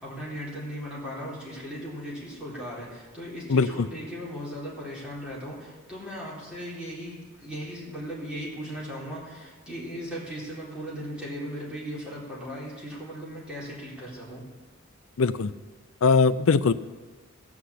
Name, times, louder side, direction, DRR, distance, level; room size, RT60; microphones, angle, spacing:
voice 1, 0.0-14.4, equal, 5° right, -7 dB, 4.0 m, -37 dB
voice 2, 15.2-15.5 16.0-16.7, left 4 dB, 70° left, 14 dB, 0.5 m, -20 dB
15.5 x 6.0 x 8.4 m, 1.4 s
head